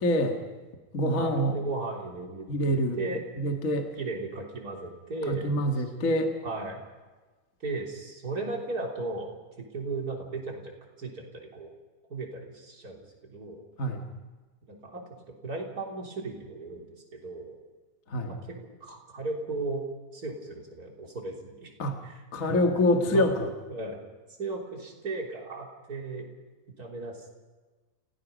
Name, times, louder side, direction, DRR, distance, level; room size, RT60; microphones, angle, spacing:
voice 1, 0.0-0.4 0.9-1.5 2.5-3.0 3.4-3.9 5.3-6.3 13.8-14.1 18.1-18.3 21.8-22.0 22.3-23.5, left 1 dB, 35° left, 4 dB, 1.4 m, -26 dB
voice 2, 1.2-3.2 4.0-5.8 6.4-6.8 7.6-10.7 11.0-11.7 12.1-13.6 14.7-17.6 18.2-19.9 20.1-21.7 22.0-22.7 23.1-23.3 23.7-24.0 24.4-26.3 26.8-27.4, right 3 dB, 25° right, 0 dB, 3.6 m, -36 dB
29.5 x 17.5 x 5.2 m, 1.3 s
omnidirectional pair, 3.8 m